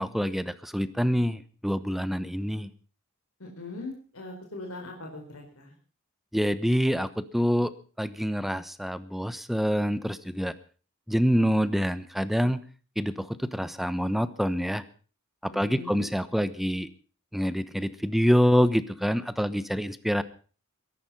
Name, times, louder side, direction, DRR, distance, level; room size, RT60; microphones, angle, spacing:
voice 1, 0.0-2.7 6.3-10.5 11.1-12.6 13.0-14.8 15.4-16.9 17.3-20.2, equal, ahead, 14 dB, 1.0 m, -26 dB
voice 2, 3.4-5.7 15.5-16.1, left 2 dB, 75° left, 1 dB, 4.3 m, -40 dB
22.0 x 11.0 x 5.5 m, 0.39 s
head